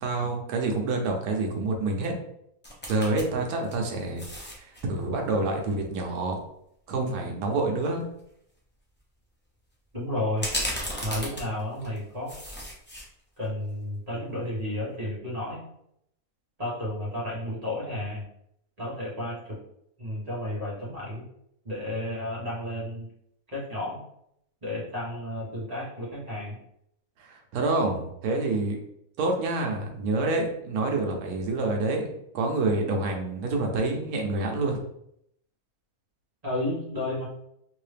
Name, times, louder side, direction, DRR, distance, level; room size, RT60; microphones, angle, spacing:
voice 1, 0.0-2.1 2.9-4.2 4.5-6.4 6.9-8.0 27.2-28.8 29.2-34.8, right 2 dB, 85° right, 2 dB, 1.2 m, -27 dB
sound 1, 2.6-3.2 3.6-4.8 7.5-7.6 8.0-8.2 10.4-12.0 12.3-13.1 13.5-13.6, equal, 15° left, 0.4 m, -34 dB
voice 2, 9.9-10.5 11.0-12.3 13.4-15.6 16.6-18.3 18.8-19.6 20.0-21.2 21.6-23.1 23.5-24.0 24.6-26.6 36.4-37.2, left 1 dB, 30° right, -7 dB, 1.3 m, -32 dB
3.1 x 2.7 x 3.3 m, 0.74 s
omnidirectional pair, 1.5 m